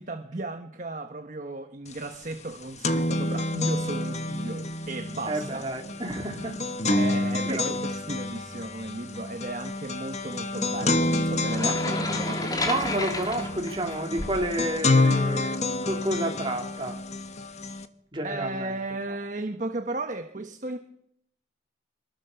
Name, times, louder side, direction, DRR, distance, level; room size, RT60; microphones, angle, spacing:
voice 1, 0.0-5.7 6.9-12.8 18.2-20.8, right 2 dB, 40° right, 1.3 m, -35 dB
sound 1, 1.9-2.0 2.3-17.9, left 2 dB, 35° left, 1.4 m, -28 dB
voice 2, 5.3-6.6 7.5-7.8 11.6-11.7 12.6-17.0 18.1-18.7, right 1 dB, 25° right, 3.7 m, -30 dB
sound 2, 11.4-14.5, left 2 dB, 20° left, 2.7 m, -32 dB
24.0 x 21.5 x 7.0 m
head